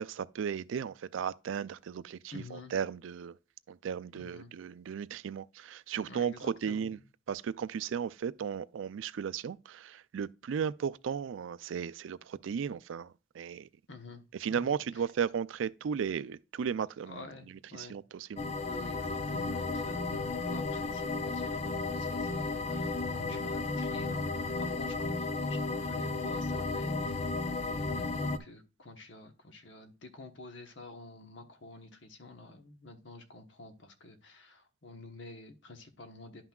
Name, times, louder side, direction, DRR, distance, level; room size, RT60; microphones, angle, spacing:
voice 1, 0.0-3.4 3.7-7.0 7.3-13.7 14.4-17.2 17.8-18.4, right 7 dB, 85° right, 0.4 m, -35 dB
voice 2, 2.3-2.7 4.1-4.5 6.1-6.9 13.9-14.2 14.5-15.0 17.0-18.0 18.6-27.4 27.6-36.5, left 3 dB, 70° left, 1.1 m, -49 dB
sound 1, 18.4-28.4, left 3 dB, 35° left, 0.5 m, -33 dB
10.5 x 5.8 x 2.3 m
head